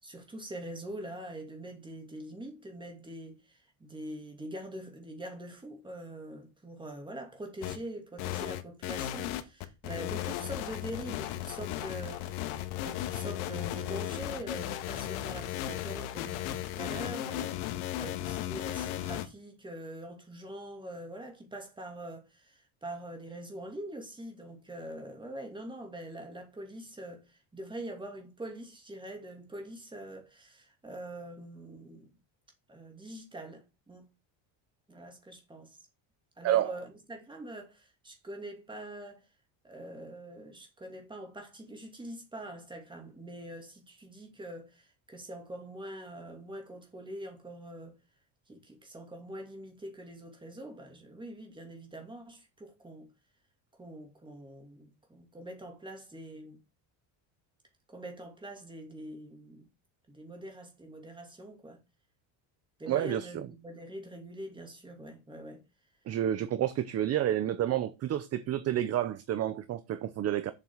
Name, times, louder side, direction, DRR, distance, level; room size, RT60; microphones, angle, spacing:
voice 1, 0.0-32.1 32.7-34.1 34.9-35.8 36.4-39.3 39.6-48.0 48.5-53.1 53.8-56.6 57.9-59.7 60.1-61.8 62.8-65.6, right 1 dB, 10° right, 2.6 m, -44 dB
sound 1, 7.6-7.8 8.2-19.2, left 13 dB, 80° left, 1.5 m, -35 dB
voice 2, 36.4-36.8 62.9-63.5 66.1-70.5, right 11 dB, 30° right, 0.6 m, -29 dB
7.5 x 6.1 x 7.2 m
cardioid pair, 165°, 48 cm